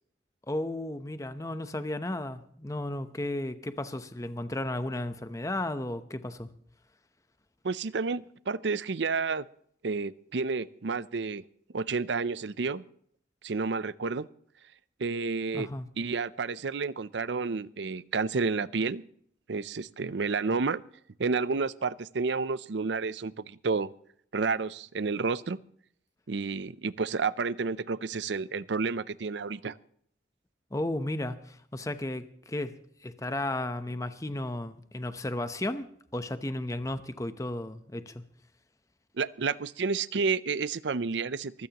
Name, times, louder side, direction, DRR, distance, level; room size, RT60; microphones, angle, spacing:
voice 1, 0.5-6.5 15.5-15.9 30.7-32.7 33.0-38.2, left 1 dB, 15° left, 10 dB, 0.8 m, -34 dB
voice 2, 7.6-9.4 9.8-11.4 11.7-12.8 13.4-14.3 15.0-15.7 16.0-19.0 19.5-20.8 21.2-23.9 24.3-25.6 26.3-29.8 39.2-41.7, right 4 dB, 70° right, 17 dB, 0.6 m, -30 dB
23.5 x 15.5 x 3.0 m, 0.65 s
head